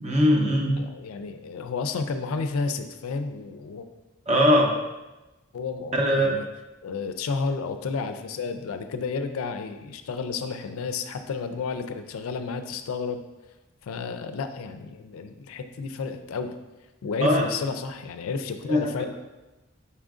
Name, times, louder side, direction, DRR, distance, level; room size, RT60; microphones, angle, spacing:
voice 1, 0.0-0.8 4.3-4.7 6.0-6.3 17.2-17.4 18.7-18.9, equal, 35° right, 0 dB, 0.7 m, -20 dB
voice 2, 0.8-3.9 5.5-6.5 6.8-13.2 13.8-16.5 17.0-19.1, left 4 dB, 85° left, 8 dB, 0.4 m, -31 dB
5.6 x 3.7 x 2.4 m, 1.1 s
head